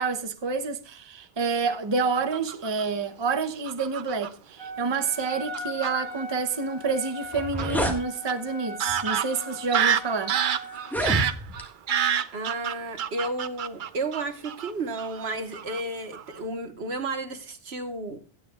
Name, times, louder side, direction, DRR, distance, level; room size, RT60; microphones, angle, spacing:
voice 1, 0.0-10.4, right 4 dB, 30° right, 0.8 m, -28 dB
Fowl / Bird vocalization bird call bird song, 2.1-2.8 3.6-4.3 5.1-5.2 5.5-5.9 7.6-7.7 8.3-8.4 8.8-14.7 15.0-15.2 15.5-15.8 16.1-16.4, right 8 dB, 55° right, 0.7 m, -28 dB
Wind instrument woodwind instrument, 4.6-11.0, left 1 dB, 70° left, 4.0 m, -39 dB
sound 1, 7.3-8.0 8.9-9.1 9.8-9.9 10.8-11.7, equal, ahead, 1.5 m, -28 dB
voice 2, 12.3-18.2, right 2 dB, 80° right, 1.6 m, -32 dB
16.5 x 10.0 x 2.4 m
omnidirectional pair, 1.1 m